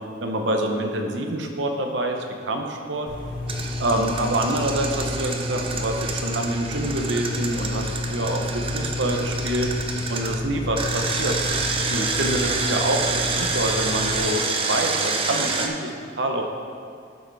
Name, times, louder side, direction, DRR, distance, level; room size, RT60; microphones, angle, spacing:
voice 1, 0.2-2.2 2.4-3.1 3.8-9.7 10.1-11.3 11.9-15.9 16.2-16.4, right 1 dB, 65° right, 3 dB, 0.9 m, -26 dB
sound 1, 3.1-14.2, left 2 dB, 45° left, 1.2 m, -31 dB
Engine, 3.5-10.3 10.8-15.7, right 4 dB, 30° right, 0.6 m, -28 dB
12.0 x 6.5 x 3.4 m, 2.3 s
head